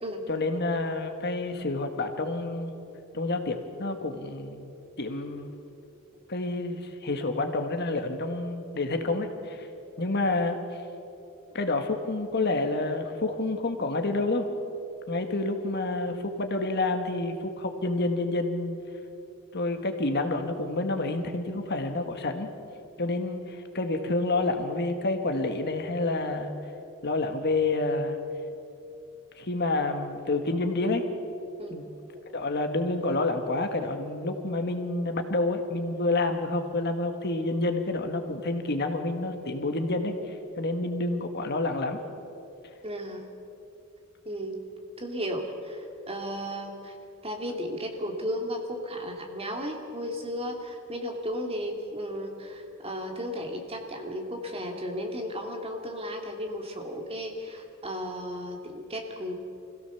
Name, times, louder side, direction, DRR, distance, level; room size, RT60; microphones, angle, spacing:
voice 1, 0.3-2.7 3.1-4.7 5.0-5.5 6.3-9.7 10.0-10.6 11.5-14.5 15.1-18.8 19.5-22.5 23.0-26.5 27.0-28.2 29.4-31.0 31.7-31.8 32.3-42.0, left 2 dB, 50° left, 6 dB, 1.6 m, -28 dB
voice 2, 42.8-43.2 44.2-44.6 45.0-46.9 47.2-59.3, equal, 30° right, 2 dB, 2.6 m, -34 dB
26.0 x 16.5 x 7.0 m, 2.8 s
head